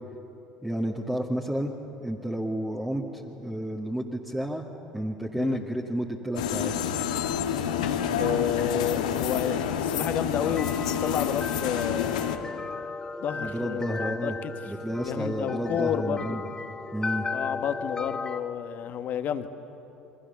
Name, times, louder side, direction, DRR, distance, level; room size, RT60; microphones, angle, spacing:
voice 1, 0.6-1.7 2.0-4.6 4.9-6.7 13.4-14.4 14.7-16.4 16.9-17.3, right 1 dB, 10° right, -2 dB, 2.1 m, -31 dB
sound 1, 6.3-12.4, left 8 dB, 75° left, 1.6 m, -28 dB
voice 2, 8.1-12.7 13.2-14.5 15.0-16.4 17.3-19.5, left 9 dB, 45° left, 9 dB, 1.5 m, -31 dB
sound 2, 10.4-18.4, left 4 dB, 20° left, 1.1 m, -36 dB
29.0 x 24.0 x 7.0 m, 3.0 s
figure-of-eight pair, 65°, 4 cm